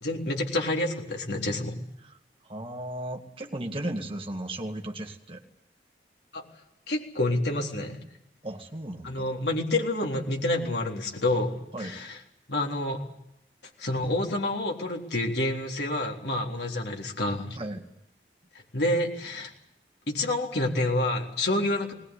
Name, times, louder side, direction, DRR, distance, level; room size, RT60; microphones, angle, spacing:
voice 1, 0.0-1.8 6.3-6.4 6.9-8.0 9.0-12.2 12.5-13.0 13.8-17.6 18.7-19.5 20.1-21.9, left 1 dB, 70° left, 1 dB, 3.8 m, -28 dB
voice 2, 2.4-5.4 8.4-9.3 11.7-12.0 17.6-17.9, right 1 dB, 30° right, 3 dB, 2.0 m, -35 dB
20.0 x 19.5 x 9.8 m, 0.79 s
head